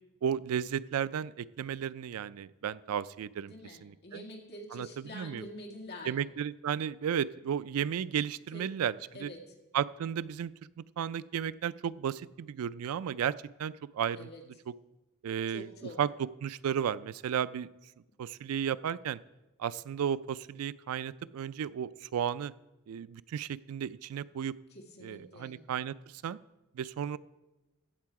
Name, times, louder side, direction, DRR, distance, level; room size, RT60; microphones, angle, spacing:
voice 1, 0.2-3.5 3.8-4.2 4.7-5.4 6.0-9.3 9.7-10.5 11.0-13.3 13.6-14.3 15.2-15.7 16.0-16.1 16.4-17.7 18.2-19.2 19.6-22.5 22.9-24.5 25.0-25.9 26.2-26.4 26.8-27.2, right 8 dB, 80° right, 18 dB, 0.3 m, -33 dB
voice 2, 3.5-6.2 8.5-8.7 9.1-9.4 14.2-14.4 15.5-16.0 24.7-25.6, left 1 dB, 50° left, -1 dB, 2.1 m, -46 dB
15.0 x 7.6 x 4.7 m, 1.0 s
head